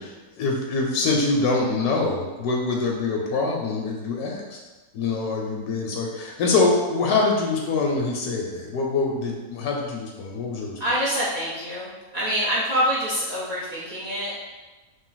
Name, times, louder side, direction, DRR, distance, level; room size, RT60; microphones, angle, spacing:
voice 1, 0.0-4.6 4.9-10.8, left 3 dB, 75° left, 0 dB, 1.0 m, -24 dB
voice 2, 10.8-14.3, equal, 75° right, -8 dB, 0.4 m, -26 dB
3.1 x 2.5 x 3.9 m, 1.2 s
omnidirectional pair, 1.7 m